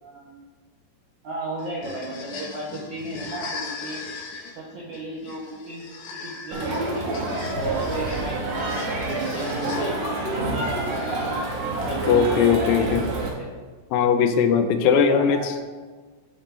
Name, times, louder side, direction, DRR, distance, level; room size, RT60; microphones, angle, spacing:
voice 1, 0.0-0.4 1.2-4.0 4.6-5.9 6.2-11.3 11.8-13.7 14.8-15.5, right 1 dB, 75° right, -5 dB, 1.8 m, -35 dB
sound 1, 1.6-10.2, left 4 dB, 75° left, 3.6 m, -39 dB
Crowd, 6.5-13.3, right 2 dB, 60° right, 2.5 m, -27 dB
voice 2, 12.1-13.0 13.9-15.6, left 6 dB, 90° left, 7 dB, 3.2 m, -19 dB
15.5 x 5.3 x 3.4 m, 1.4 s
omnidirectional pair, 5.5 m